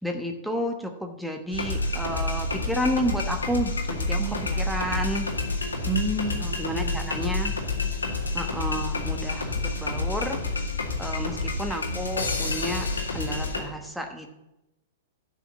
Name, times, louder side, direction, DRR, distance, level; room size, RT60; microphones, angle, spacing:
voice 1, 0.0-5.3 6.6-7.5 8.3-10.4 11.0-12.9 13.1-14.3, equal, ahead, 4 dB, 1.1 m, -31 dB
sound 1, 1.5-13.6, left 3 dB, 85° left, 2.1 m, -29 dB
voice 2, 4.2-4.6 5.8-7.2, right 3 dB, 25° right, 7 dB, 1.1 m, -31 dB
12.0 x 5.1 x 7.7 m, 0.92 s
figure-of-eight pair, 105°, 0 cm